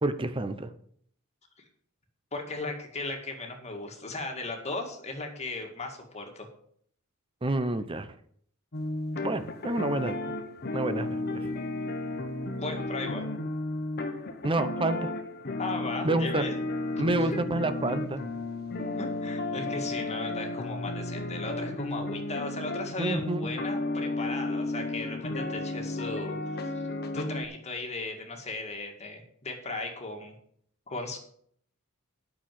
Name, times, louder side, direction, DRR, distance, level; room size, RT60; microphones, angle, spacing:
voice 1, 0.0-0.7 7.4-8.1 9.2-10.2 10.7-11.5 14.4-15.1 16.0-16.4 17.0-18.2 23.0-23.4, right 2 dB, 25° right, 11 dB, 0.7 m, -28 dB
voice 2, 2.3-6.5 12.6-13.2 15.6-16.6 16.9-17.4 19.0-26.7 27.1-30.4 30.9-31.2, left 2 dB, 30° left, 3 dB, 2.0 m, -37 dB
sound 1, 8.7-27.5, left 2 dB, 45° left, 1.1 m, -33 dB
8.9 x 6.4 x 7.7 m, 0.64 s
head